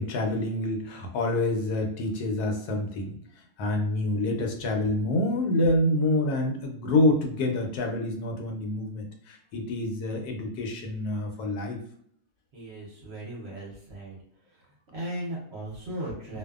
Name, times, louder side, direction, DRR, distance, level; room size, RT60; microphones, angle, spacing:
voice 1, 0.0-3.2 3.6-11.8, left 1 dB, 80° left, 3 dB, 1.1 m, -27 dB
voice 2, 12.5-14.2 14.9-16.4, right 1 dB, 55° right, -5 dB, 0.8 m, -37 dB
2.6 x 2.3 x 2.3 m, 0.64 s
omnidirectional pair, 1.7 m